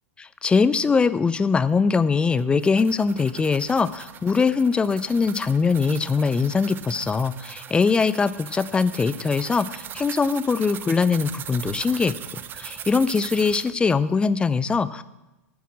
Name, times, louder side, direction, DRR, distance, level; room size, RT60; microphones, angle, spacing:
voice 1, 0.4-12.1 12.5-15.0, left 5 dB, 10° left, 16 dB, 0.5 m, -22 dB
sound 1, 2.4-13.7, right 9 dB, 25° right, 0.7 m, -39 dB
14.5 x 9.2 x 6.2 m, 1.0 s
figure-of-eight pair, 95°, 8 cm